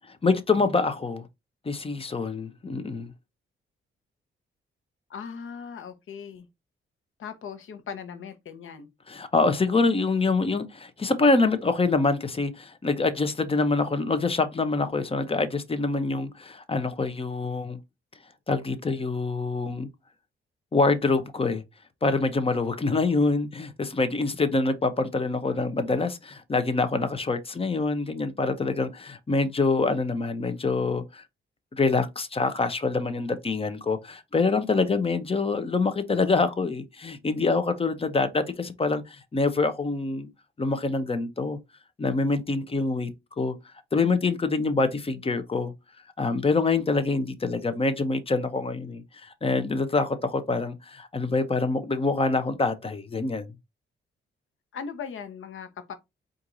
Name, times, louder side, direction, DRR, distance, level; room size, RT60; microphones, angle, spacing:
voice 1, 0.2-1.3 1.7-3.1 9.1-17.8 18.5-19.9 20.7-21.6 22.0-31.2 31.7-40.3 40.6-41.6 42.0-43.1 43.4-43.5 43.9-45.7 46.2-53.5, left 3 dB, 25° left, 0.7 m, -25 dB
voice 2, 5.1-6.5 7.2-8.9 54.7-55.9, left 6 dB, 70° left, 0.9 m, -39 dB
4.5 x 2.6 x 3.9 m
cardioid pair, 100°, 21 cm